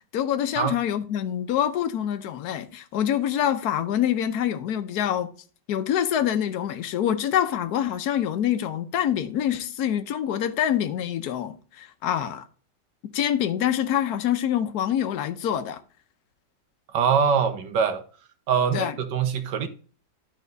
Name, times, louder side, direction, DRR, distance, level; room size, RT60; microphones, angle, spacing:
voice 1, 0.1-5.3 5.7-12.4 13.0-15.8 18.7-18.9, left 10 dB, 65° left, 1.3 m, -25 dB
voice 2, 16.9-18.0 18.5-19.7, right 7 dB, 80° right, 1.7 m, -23 dB
11.5 x 4.5 x 3.9 m
omnidirectional pair, 1.9 m